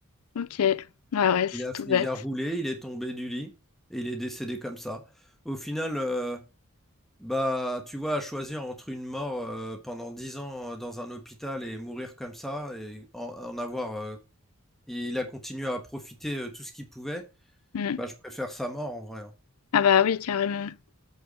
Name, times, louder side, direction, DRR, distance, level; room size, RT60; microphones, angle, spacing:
voice 1, 0.4-0.8 1.1-2.1 17.7-18.0 19.7-20.8, left 8 dB, 90° left, 0.5 m, -24 dB
voice 2, 1.5-3.5 3.9-5.0 5.4-6.4 7.2-14.2 14.9-17.3 17.9-19.3, equal, ahead, 1.3 m, -33 dB
8.3 x 4.7 x 6.3 m
head